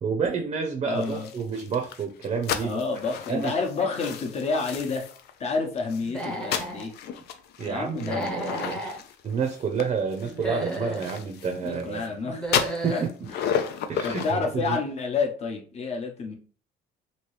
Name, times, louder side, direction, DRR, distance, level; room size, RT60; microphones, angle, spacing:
voice 1, 0.0-2.8 3.3-3.6 7.6-8.8 9.2-12.0 12.8-13.3 13.9-14.8, right 5 dB, 35° right, 4 dB, 0.5 m, -29 dB
voice 2, 0.8-1.3 2.6-5.0 5.4-6.9 7.6-8.8 11.6-12.4 12.9-13.0 13.3-13.4 14.0-16.3, left 4 dB, 40° left, 2 dB, 0.9 m, -29 dB
sound 1, 0.9-5.3 5.8-12.1 12.4-14.3, left 8 dB, 75° left, 0.4 m, -33 dB
Human voice / Animal, 6.0-6.9 8.0-9.0 10.2-11.1 12.2-13.1, right 1 dB, 5° left, 0.8 m, -33 dB
2.9 x 2.7 x 3.2 m, 0.40 s
cardioid pair, 110°, 17 cm